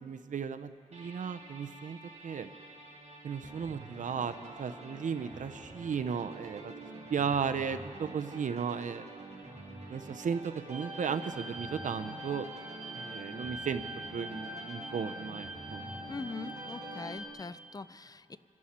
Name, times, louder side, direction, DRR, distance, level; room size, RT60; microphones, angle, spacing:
voice 1, 0.0-2.5 3.2-6.7 7.1-9.1 9.9-12.5 12.9-13.8 14.1-15.8, right 6 dB, 70° right, 10 dB, 0.6 m, -35 dB
sound 1, 0.9-17.2, right 2 dB, 55° right, 4.0 m, -47 dB
sound 2, 10.7-17.3, right 1 dB, 10° right, 2.3 m, -44 dB
voice 2, 16.1-18.4, left 4 dB, 30° left, 14 dB, 0.5 m, -42 dB
25.5 x 11.0 x 4.3 m, 2.7 s
cardioid pair, 65°, 14 cm